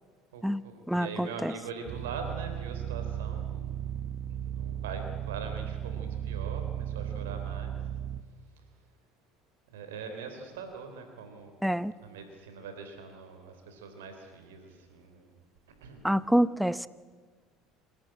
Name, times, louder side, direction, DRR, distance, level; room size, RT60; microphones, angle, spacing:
voice 1, 0.3-3.8 4.3-7.8 9.7-11.6 12.0-15.3 15.8-16.0, right 5 dB, 90° right, 3.5 m, -42 dB
voice 2, 0.9-1.5 11.6-11.9 16.0-16.9, equal, ahead, 0.7 m, -26 dB
sound 1, 1.9-8.2, right 10 dB, 55° right, 1.0 m, -35 dB
27.0 x 11.5 x 8.9 m
supercardioid pair, 80°, 0 cm